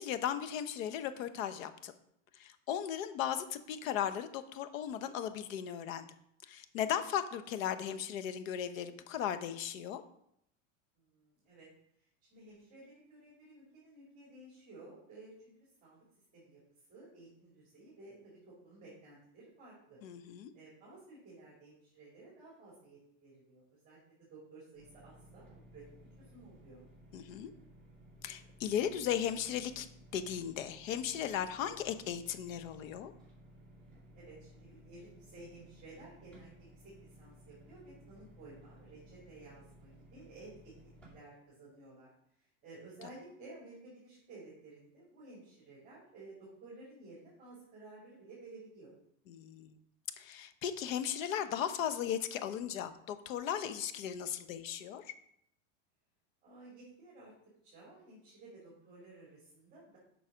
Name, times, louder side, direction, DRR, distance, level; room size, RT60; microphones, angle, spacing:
voice 1, 0.0-1.9 2.3-6.1 6.5-10.0 20.0-20.5 27.1-27.5 28.2-29.9 30.1-33.1 49.3-49.8 50.2-55.1, left 9 dB, 85° left, 11 dB, 1.0 m, -36 dB
voice 2, 10.9-11.7 12.3-15.5 15.8-16.0 16.3-16.6 16.9-20.0 20.5-25.5 25.7-25.8 26.2-26.8 34.1-36.9 37.2-42.1 42.6-48.9 56.4-57.3 57.6-60.0, right 2 dB, 20° right, -6 dB, 2.7 m, -54 dB
sound 1, 24.7-41.1, equal, 5° left, 2.3 m, -58 dB
7.1 x 5.8 x 5.0 m, 0.73 s
supercardioid pair, 170°, 39 cm